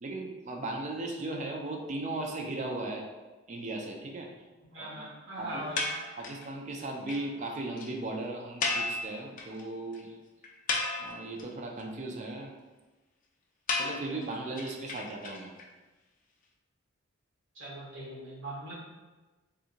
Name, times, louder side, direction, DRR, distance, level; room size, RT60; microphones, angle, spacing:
voice 1, 0.0-3.0 3.5-4.3 4.8-5.0 5.4-5.7 6.2-10.1 11.0-12.5 13.8-15.5, right 2 dB, 35° right, 2 dB, 0.4 m, -37 dB
voice 2, 4.7-5.9 17.5-18.7, right 1 dB, 70° right, -7 dB, 1.4 m, -40 dB
sound 1, 5.8-6.5 6.8-6.9 7.1-7.2 7.5-7.6 7.8-7.9 8.6-9.6 9.9-10.0 10.4-11.4 13.7-15.6, left 3 dB, 40° left, 0.4 m, -33 dB
3.6 x 2.6 x 2.8 m, 1.2 s
head